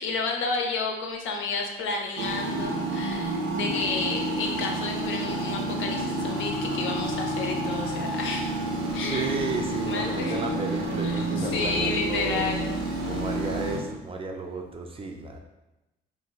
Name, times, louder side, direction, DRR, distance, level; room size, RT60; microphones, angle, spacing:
voice 1, 0.0-8.5 8.9-9.3 9.9-10.5 11.0-12.7, left 4 dB, 80° left, 2 dB, 0.5 m, -31 dB
sound 1, 2.2-13.8, right 1 dB, 75° right, 0.6 m, -29 dB
voice 2, 9.0-12.5 13.0-15.4, right 3 dB, 30° right, 3 dB, 0.4 m, -33 dB
2.5 x 2.4 x 3.0 m, 0.97 s
cardioid pair, 90°, 20 cm